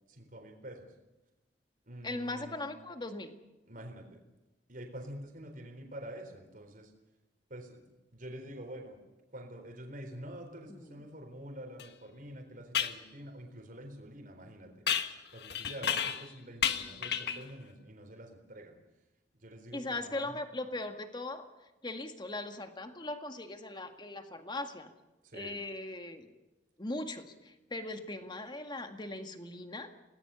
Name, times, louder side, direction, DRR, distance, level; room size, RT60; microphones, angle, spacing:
voice 1, 0.1-0.9 1.9-2.6 3.7-4.2 4.7-6.9 7.5-7.8 8.1-9.0 9.3-14.7 15.3-18.8 19.3-20.3 25.2-25.6, right 1 dB, 50° right, 3 dB, 4.0 m, -47 dB
voice 2, 2.0-3.3 10.7-11.0 19.7-21.5 21.8-24.9 25.3-26.3 26.8-29.9, left 2 dB, 25° left, 6 dB, 1.9 m, -39 dB
sound 1, 11.8-11.9 12.7-13.0 14.9-16.3 16.6-17.5, left 8 dB, 65° left, 1.4 m, -32 dB
27.5 x 19.0 x 7.0 m, 1.0 s
head